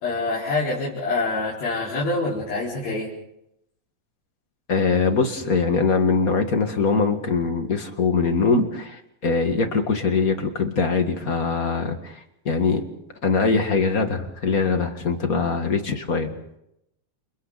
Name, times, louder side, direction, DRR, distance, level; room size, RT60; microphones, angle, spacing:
voice 1, 0.0-3.1, left 3 dB, 75° left, -7 dB, 6.4 m, -26 dB
voice 2, 4.7-12.2 12.4-12.8 13.2-16.3, left 4 dB, 40° left, 5 dB, 1.4 m, -22 dB
30.0 x 28.5 x 4.1 m, 0.81 s
omnidirectional pair, 4.2 m